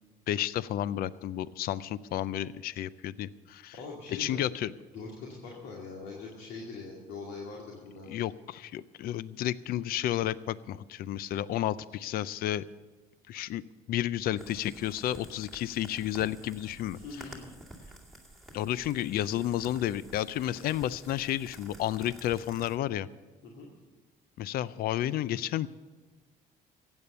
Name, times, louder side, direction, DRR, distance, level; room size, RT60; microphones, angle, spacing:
voice 1, 0.3-3.7 4.1-4.7 8.1-12.6 13.3-13.6 13.9-17.0 18.5-23.1 24.4-25.7, left 12 dB, 65° left, 18 dB, 0.4 m, -31 dB
voice 2, 3.7-4.5 4.9-8.1 16.9-17.4 23.4-23.7, left 4 dB, 85° left, -2 dB, 2.3 m, -42 dB
sound 1, 14.4-22.8, right 1 dB, ahead, 2.2 m, -50 dB
15.0 x 8.9 x 6.8 m, 1.3 s
cardioid pair, 110°, 17 cm